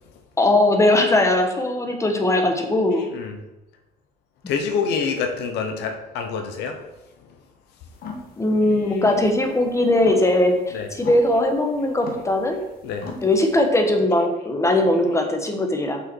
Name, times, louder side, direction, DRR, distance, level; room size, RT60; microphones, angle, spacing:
voice 1, 0.4-3.0 8.4-12.6 13.2-16.0, left 1 dB, 15° left, 4 dB, 1.3 m, -20 dB
voice 2, 4.5-6.8 10.7-10.9 12.8-13.1, left 5 dB, 85° left, 5 dB, 1.0 m, -26 dB
sound 1, 7.9-13.7, left 4 dB, 60° left, 1.5 m, -38 dB
6.2 x 5.7 x 4.6 m, 1.0 s
cardioid pair, 110°, 17 cm